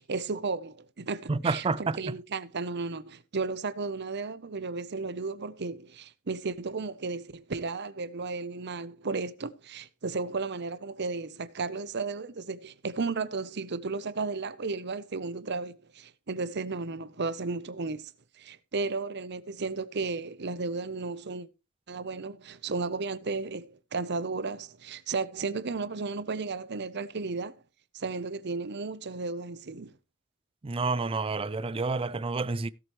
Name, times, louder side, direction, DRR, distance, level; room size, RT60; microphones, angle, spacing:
voice 1, 0.0-18.1 18.4-21.5 21.9-27.6 27.9-29.9, right 4 dB, 50° right, 0.8 m, -34 dB
voice 2, 1.3-2.1 30.6-32.7, right 3 dB, 25° right, 0.4 m, -29 dB
16.5 x 7.7 x 3.1 m
head